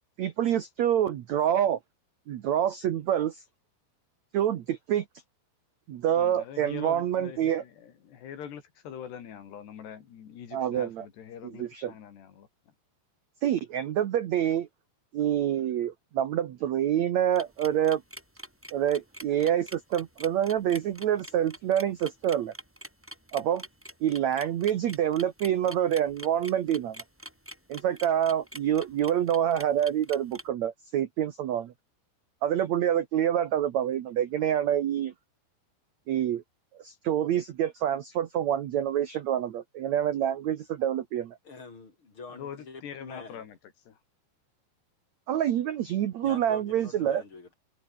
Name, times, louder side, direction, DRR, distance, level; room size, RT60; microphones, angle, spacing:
voice 1, 0.2-1.8 2.3-3.4 4.3-5.0 5.9-7.6 10.5-11.0 11.5-11.9 13.4-14.7 15.1-18.0 18.7-22.5 23.3-23.6 24.0-27.0 27.7-31.7 32.4-35.1 36.1-36.4 36.8-41.4 45.3-47.2, right 10 dB, 80° right, 1.6 m, -27 dB
voice 2, 6.2-12.7 42.3-43.6 43.9-44.0, left 8 dB, 70° left, 4.9 m, -43 dB
sound 1, 17.3-30.4, equal, 5° right, 3.9 m, -44 dB
voice 3, 41.4-43.4 46.2-47.6, left 4 dB, 30° left, 5.1 m, -45 dB
omnidirectional pair, 5.0 m